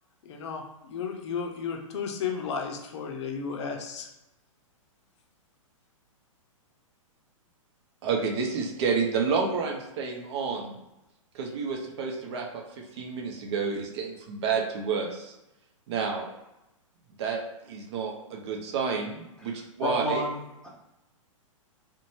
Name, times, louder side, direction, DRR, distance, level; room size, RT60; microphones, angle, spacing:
voice 1, 0.3-4.1, left 6 dB, 55° left, 3 dB, 0.5 m, -33 dB
voice 2, 8.0-10.7 11.3-15.3 15.9-16.2 17.2-17.4 17.7-20.2, right 5 dB, 50° right, 1 dB, 0.6 m, -30 dB
voice 3, 19.8-20.7, equal, 5° left, -5 dB, 0.6 m, -31 dB
2.5 x 2.1 x 3.0 m, 0.90 s
hypercardioid pair, 130°, 17 cm